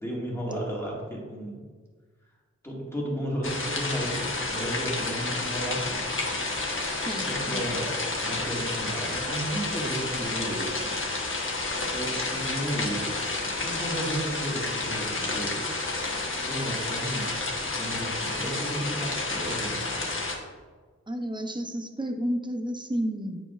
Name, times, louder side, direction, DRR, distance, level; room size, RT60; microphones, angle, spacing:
voice 1, 0.0-1.6 2.6-6.1 7.0-7.9 8.2-10.7 11.9-15.7 16.5-17.4 17.7-19.9, right 1 dB, 10° left, -5 dB, 1.9 m, -33 dB
sound 1, 3.4-20.4, left 2 dB, 45° left, 1.1 m, -30 dB
voice 2, 7.1-7.6 21.1-23.4, equal, 15° right, 5 dB, 0.6 m, -31 dB
8.8 x 4.7 x 2.4 m, 1.4 s
wide cardioid pair, 70°, 29 cm